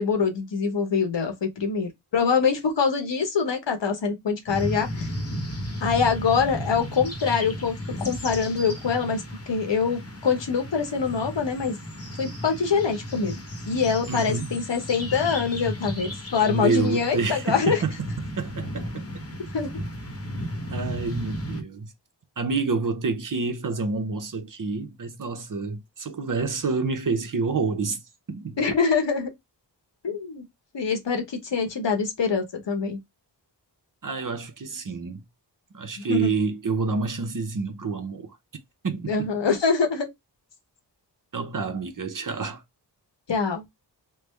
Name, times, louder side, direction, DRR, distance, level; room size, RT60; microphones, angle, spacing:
voice 1, 0.0-5.1 5.8-11.8 12.2-13.3 13.7-17.8 19.5-19.7 28.6-29.3 30.0-30.4 30.7-33.0 36.0-36.3 39.1-40.1 43.3-43.6, left 5 dB, 75° left, 1.1 m, -24 dB
sound 1, 4.5-21.6, equal, 35° left, 0.9 m, -34 dB
voice 2, 14.1-14.5 16.5-17.9 18.4-19.2 20.7-21.9 22.4-28.0 28.3-28.6 34.0-35.2 35.7-38.4 38.8-39.3 41.3-42.6, right 4 dB, 45° right, 0.7 m, -28 dB
3.3 x 2.0 x 3.2 m
wide cardioid pair, 65°, 43 cm